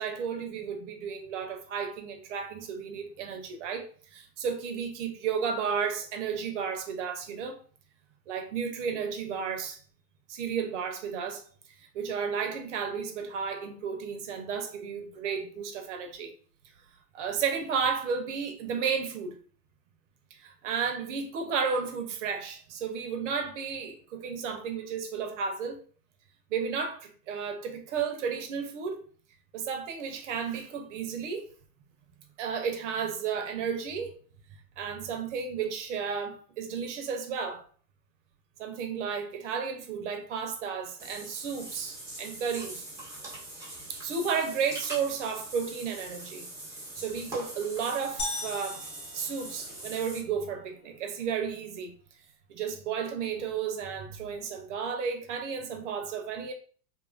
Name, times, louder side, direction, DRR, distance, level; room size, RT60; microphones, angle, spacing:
voice 1, 0.0-3.9 4.1-7.6 8.3-9.8 10.3-11.4 11.9-16.3 17.1-19.4 20.3-25.8 26.5-29.0 29.5-31.5 32.4-34.2 34.8-37.6 38.6-42.8 43.9-46.5 47.0-48.8 49.1-51.9 52.5-56.5, right 6 dB, 50° right, 0.6 m, -33 dB
Water / Bathtub (filling or washing), 41.0-50.2, right 1 dB, 5° right, 0.6 m, -42 dB
sound 1, 48.2-50.1, left 2 dB, 60° left, 1.0 m, -38 dB
2.8 x 2.3 x 2.4 m
hypercardioid pair, 115°, 48 cm